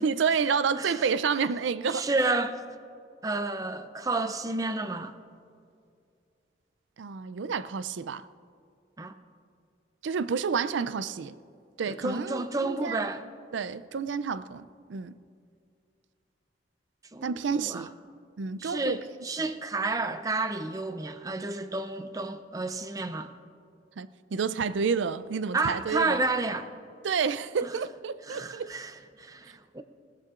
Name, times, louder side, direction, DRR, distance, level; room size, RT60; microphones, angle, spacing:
voice 1, 0.0-2.1 7.0-8.3 10.0-11.4 11.8-13.0 13.5-15.2 17.2-17.9 18.4-19.0 24.0-26.2 27.0-28.7, right 6 dB, 85° right, 0.4 m, -29 dB
voice 2, 1.9-2.6 3.2-5.1 9.0-9.1 11.9-13.3 17.1-17.9 18.6-23.3 25.5-26.7 27.6-27.7 28.3-29.8, right 2 dB, 20° right, 0.5 m, -31 dB
20.0 x 16.5 x 2.5 m
head